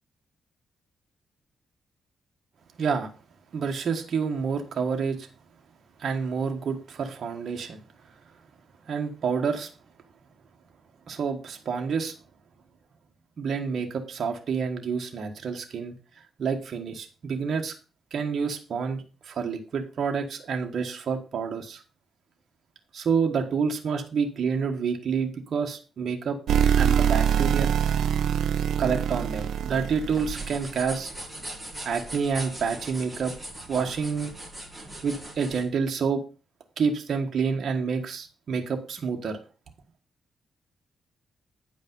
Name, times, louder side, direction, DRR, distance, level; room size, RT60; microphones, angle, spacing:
voice 1, 2.8-3.1 3.5-5.3 6.0-7.8 8.9-9.7 11.1-12.1 13.4-15.9 16.4-17.7 18.1-21.8 22.9-26.4 26.8-27.7 28.8-31.1 31.8-33.3 33.7-34.3 35.0-36.2 36.8-39.4, right 6 dB, 60° right, 3 dB, 1.5 m, -28 dB
sound 1, 26.5-30.7, right 8 dB, 75° right, 0.4 m, -24 dB
sound 2, 30.0-35.7, right 1 dB, 5° right, 3.1 m, -40 dB
9.3 x 5.2 x 5.4 m, 0.34 s
cardioid pair, 100°, 0 cm